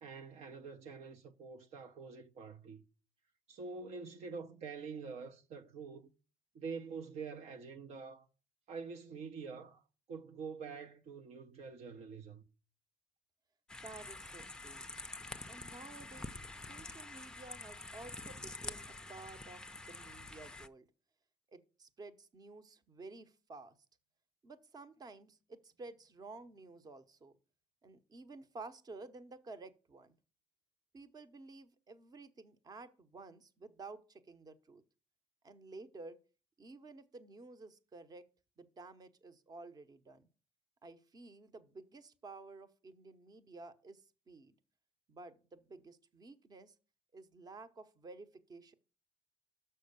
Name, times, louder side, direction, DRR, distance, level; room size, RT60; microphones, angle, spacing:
voice 1, 0.0-2.8 3.5-6.1 6.5-8.3 8.7-9.8 10.1-12.4, right 5 dB, 60° right, 0.7 m, -46 dB
sound 1, 13.7-20.7, left 2 dB, 5° left, 0.5 m, -47 dB
voice 2, 13.8-14.9 15.5-20.9 21.5-23.8 24.4-27.4 27.8-30.1 30.9-34.8 35.4-36.2 36.6-38.3 38.6-40.3 40.8-44.6 45.1-46.7 47.1-48.7, right 3 dB, 30° right, 0.9 m, -52 dB
6.3 x 5.5 x 6.7 m
cardioid pair, 95°, 13 cm